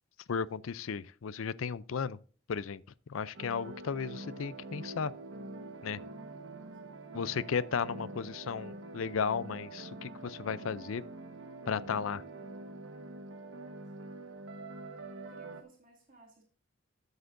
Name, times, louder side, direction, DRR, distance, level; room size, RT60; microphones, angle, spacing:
voice 1, 0.3-2.2 2.5-2.8 3.1-5.1 5.8-6.0 7.1-11.0 11.7-12.2, left 6 dB, 85° left, 0.5 m, -34 dB
sound 1, 3.3-15.6, right 2 dB, 70° right, 1.2 m, -45 dB
voice 2, 6.6-7.2 14.0-14.3 15.2-16.4, right 3 dB, 45° right, 2.4 m, -61 dB
13.0 x 8.0 x 2.6 m
head